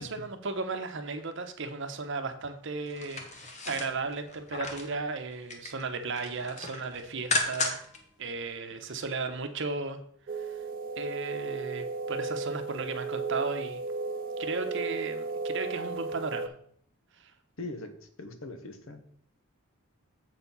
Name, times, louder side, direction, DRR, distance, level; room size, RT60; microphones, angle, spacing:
voice 1, 0.0-7.8 8.2-10.0 10.3-10.7 11.0-13.8 14.4-16.5 17.2-17.3, right 4 dB, 55° right, 7 dB, 0.9 m, -35 dB
sound 1, 2.9-4.9 5.3-5.8 6.1-8.0 8.3-8.4, left 2 dB, 30° left, 1.1 m, -34 dB
sound 2, 10.3-16.5, right 4 dB, 40° right, 0.4 m, -34 dB
voice 2, 17.6-17.9 18.2-19.0, left 2 dB, 60° left, 8 dB, 1.0 m, -40 dB
7.5 x 4.6 x 5.5 m, 0.64 s
head